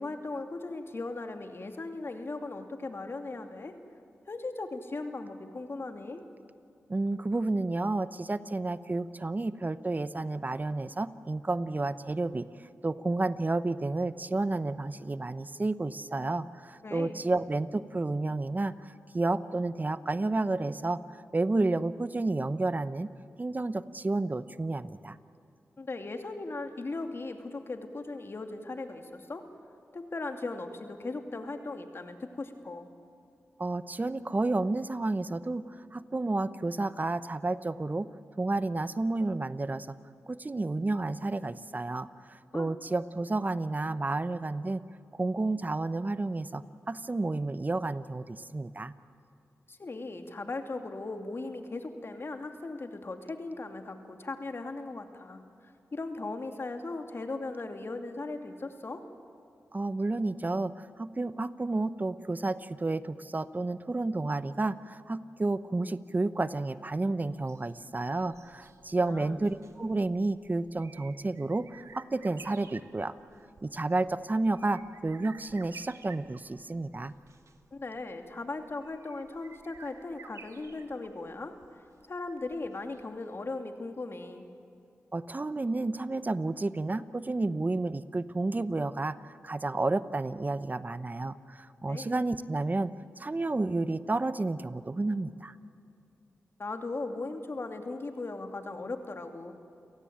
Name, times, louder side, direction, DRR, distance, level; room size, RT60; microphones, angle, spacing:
voice 1, 0.0-3.7 4.3-6.2 16.8-17.2 25.8-29.4 29.9-32.9 42.5-42.7 49.7-59.0 69.0-69.4 77.7-81.5 82.1-84.4 91.9-92.1 96.6-99.6, left 3 dB, 50° left, 5 dB, 2.6 m, -38 dB
voice 2, 6.9-12.5 12.8-21.0 21.3-23.1 23.4-25.2 33.6-38.1 38.4-39.9 40.3-44.8 45.1-48.9 59.7-73.1 73.6-77.1 85.1-89.2 89.4-92.9 93.2-95.5, right 2 dB, 35° right, 14 dB, 0.9 m, -31 dB
sound 1, 67.3-83.3 83.6-83.7, right 5 dB, 75° right, 1.6 m, -54 dB
29.5 x 17.5 x 8.8 m, 2.5 s
cardioid pair, 45°, 5 cm